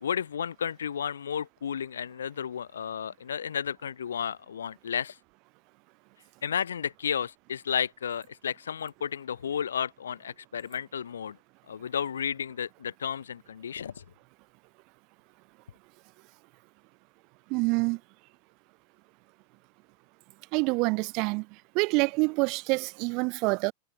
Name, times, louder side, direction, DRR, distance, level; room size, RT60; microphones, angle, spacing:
voice 1, 0.0-5.2 6.4-11.4 11.7-14.0, left 8 dB, 65° left, 1.9 m, -32 dB
voice 2, 17.5-18.0 20.5-21.5 21.7-23.7, right 29 dB, 45° right, 0.7 m, -26 dB
figure-of-eight pair, 90°, 0 cm